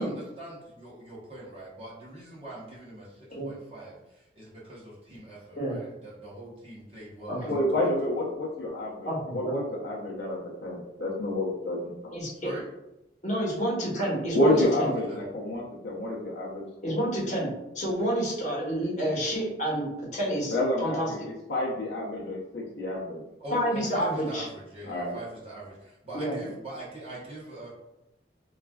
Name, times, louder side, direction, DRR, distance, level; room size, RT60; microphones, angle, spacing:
voice 1, 0.0-7.5 7.8-7.9 12.3-12.7 14.5-15.3 23.4-27.7, right 1 dB, 35° right, -7 dB, 0.9 m, -42 dB
voice 2, 7.5-12.0 14.3-17.0 20.5-23.2 24.9-25.2, left 1 dB, 65° left, -4 dB, 0.6 m, -29 dB
voice 3, 9.0-9.5 12.1-12.3 13.2-14.5 14.8-14.9 16.8-17.5 17.7-19.9 20.1-20.5 20.8-21.1 23.5-24.4 26.1-26.3, equal, 40° left, -6 dB, 1.0 m, -29 dB
3.1 x 2.4 x 2.3 m, 0.90 s
head